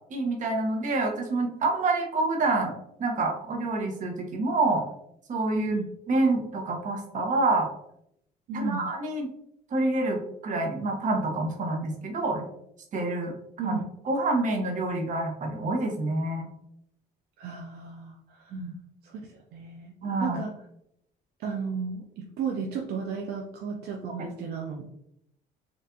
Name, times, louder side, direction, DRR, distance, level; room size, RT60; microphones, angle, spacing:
voice 1, 0.1-2.7 3.0-4.8 5.3-5.7 6.1-7.7 8.5-9.3 9.7-12.5 12.9-13.3 13.6-13.8 14.0-16.5 18.5-18.7 20.0-20.4, right 2 dB, 50° right, 2 dB, 1.0 m, -27 dB
voice 2, 5.5-5.9 8.5-8.8 13.6-13.8 17.4-18.6 19.0-19.2 19.5-19.9 20.2-20.5 21.4-24.9, right 5 dB, 70° right, 1 dB, 0.5 m, -33 dB
4.4 x 2.5 x 2.6 m, 0.76 s
cardioid pair, 110°, 17 cm